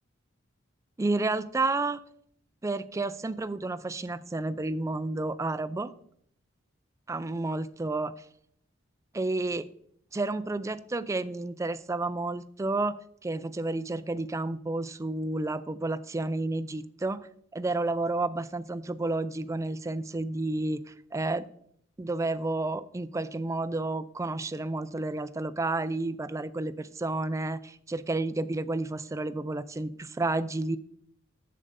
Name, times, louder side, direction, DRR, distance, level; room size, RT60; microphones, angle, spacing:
voice 1, 1.0-2.0 2.6-5.9 7.1-8.1 9.1-9.7 10.1-17.3 17.5-21.4 22.0-30.8, right 2 dB, 15° right, 13 dB, 0.3 m, -31 dB
11.0 x 7.6 x 2.6 m, 0.67 s
head